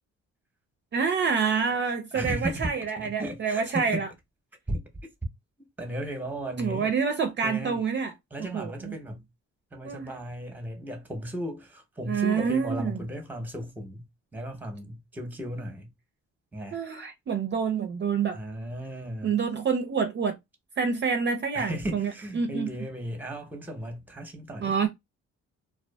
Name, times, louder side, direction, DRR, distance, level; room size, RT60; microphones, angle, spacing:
voice 1, 0.9-4.1 6.6-8.1 8.5-8.9 9.8-10.1 12.1-13.0 16.7-18.4 19.2-20.4 20.8-22.7 24.6-24.9, right 6 dB, 40° right, 0.4 m, -27 dB
voice 2, 2.1-4.0 4.7-4.8 5.8-6.9 7.4-7.8 8.3-9.3 9.7-14.0 14.3-15.9 16.5-16.8 18.3-19.3 21.5-24.7, right 1 dB, 5° right, 0.7 m, -35 dB
2.4 x 2.3 x 2.2 m
cardioid pair, 90°, 30 cm